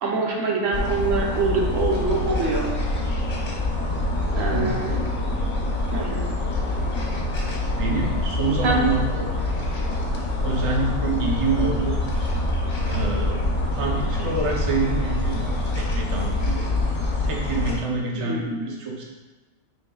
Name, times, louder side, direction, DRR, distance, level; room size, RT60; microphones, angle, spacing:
voice 1, 0.0-2.7 4.3-5.0 5.9-6.2 8.6-8.9 18.1-18.5, right 3 dB, 85° right, -1 dB, 1.1 m, -24 dB
sound 1, 0.7-17.8, left 2 dB, 40° left, 0.6 m, -25 dB
voice 2, 7.8-9.3 10.4-12.0 12.9-13.4 13.7-16.6 17.2-19.0, right 3 dB, 45° right, -1 dB, 0.4 m, -27 dB
4.6 x 3.3 x 2.3 m, 1.2 s
omnidirectional pair, 1.3 m